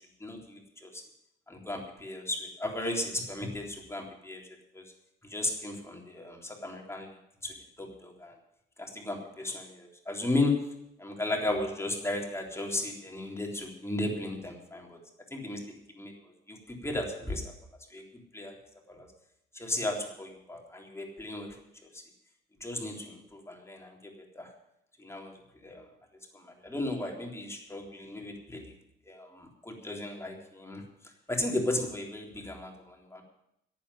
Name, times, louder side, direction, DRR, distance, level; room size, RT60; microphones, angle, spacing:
voice 1, 0.2-1.0 1.5-4.4 4.7-4.8 5.2-7.1 7.4-8.3 8.8-10.5 11.0-15.0 15.3-16.1 16.5-17.4 17.9-18.0 18.3-18.5 18.9-19.1 19.5-21.5 21.9-22.0 22.6-24.5 25.0-25.3 25.6-25.8 26.3-28.6 29.1-30.8 31.3-33.2, left 2 dB, 15° left, 1 dB, 3.5 m, -35 dB
11.0 x 9.0 x 9.8 m, 0.79 s
cardioid pair, 90°, 20 cm